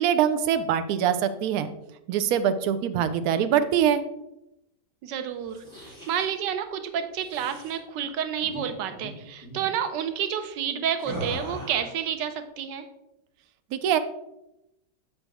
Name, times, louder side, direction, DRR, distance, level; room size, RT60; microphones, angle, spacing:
voice 1, 0.0-1.7 2.1-4.0 13.7-14.0, right 9 dB, 70° right, 11 dB, 0.9 m, -23 dB
voice 2, 5.0-5.6 6.1-12.8, right 8 dB, 90° right, 9 dB, 1.3 m, -30 dB
sound 1, 5.4-6.3 7.2-7.8 8.4-8.6 8.9-9.1 9.4-9.7 11.0-11.9, equal, 15° right, 2.6 m, -38 dB
7.1 x 5.4 x 3.4 m, 0.88 s
omnidirectional pair, 1.9 m